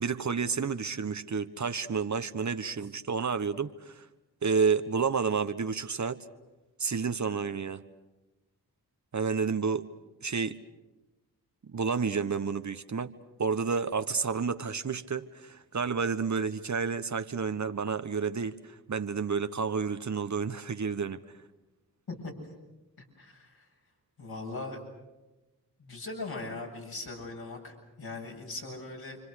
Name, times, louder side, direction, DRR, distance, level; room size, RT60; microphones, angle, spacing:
voice 1, 0.0-4.0 4.4-6.2 6.8-7.8 9.1-9.9 10.2-10.6 11.7-13.1 13.4-21.2, right 5 dB, 45° right, 10 dB, 1.4 m, -30 dB
voice 2, 23.2-23.6 24.2-24.8 25.8-29.2, left 3 dB, 65° left, 0 dB, 8.0 m, -40 dB
29.5 x 25.0 x 6.6 m, 1.1 s
supercardioid pair, 40°, 40 cm